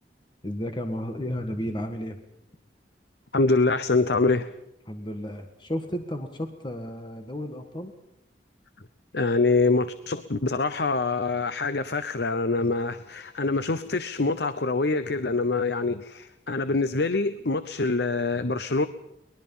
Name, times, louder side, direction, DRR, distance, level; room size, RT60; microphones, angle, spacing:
voice 1, 0.4-2.2 4.9-7.9, equal, 25° left, 5 dB, 1.6 m, -33 dB
voice 2, 3.3-4.5 9.1-18.9, left 3 dB, 65° left, 12 dB, 0.9 m, -25 dB
23.5 x 20.5 x 5.6 m, 0.86 s
head